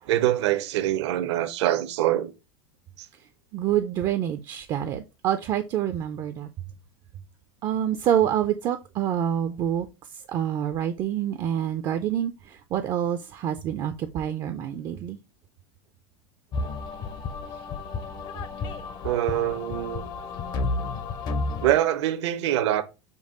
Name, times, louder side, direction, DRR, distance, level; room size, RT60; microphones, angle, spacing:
voice 1, 0.1-2.3 3.0-3.1 19.0-20.0 21.6-22.8, right 13 dB, 70° right, 0.7 m, -24 dB
voice 2, 3.5-6.5 7.6-9.9 10.1-15.2, right 10 dB, 25° right, 0.4 m, -27 dB
sound 1, 16.5-21.8, left 3 dB, 30° left, 0.5 m, -32 dB
5.3 x 2.3 x 3.7 m
supercardioid pair, 155°, 15 cm